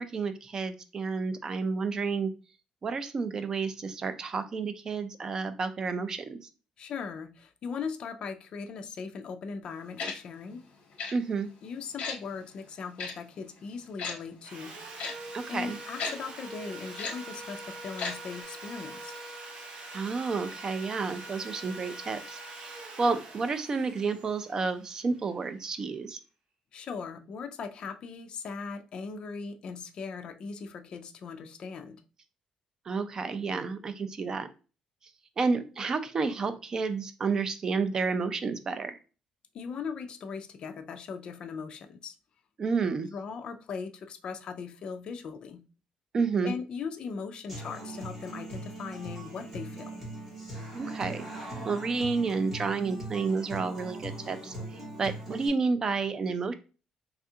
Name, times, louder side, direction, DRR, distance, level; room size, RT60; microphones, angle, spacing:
voice 1, 0.0-2.3 2.8-6.5 11.1-11.5 15.3-15.8 19.9-26.2 32.9-34.5 35.4-39.0 42.6-43.1 46.1-46.5 50.7-56.5, right 4 dB, 30° right, 0.4 m, -30 dB
voice 2, 6.8-10.7 11.6-14.8 15.5-19.1 26.7-32.0 39.5-42.1 43.1-45.6 46.4-50.0, left 5 dB, 45° left, 0.4 m, -39 dB
Tick-tock, 10.0-10.1 11.0-11.1 12.0-12.2 13.0-13.1 14.0-14.1 15.0-15.1 16.0-16.1 17.0-17.1 18.0-18.1 18.4-18.5, left 5 dB, 60° left, 0.9 m, -33 dB
Sawing, 14.4-25.5, right 2 dB, 55° right, 0.8 m, -44 dB
Human voice / Acoustic guitar, 47.5-55.5, right 2 dB, 10° right, 1.3 m, -40 dB
3.4 x 2.3 x 2.7 m
cardioid pair, 155°, 2 cm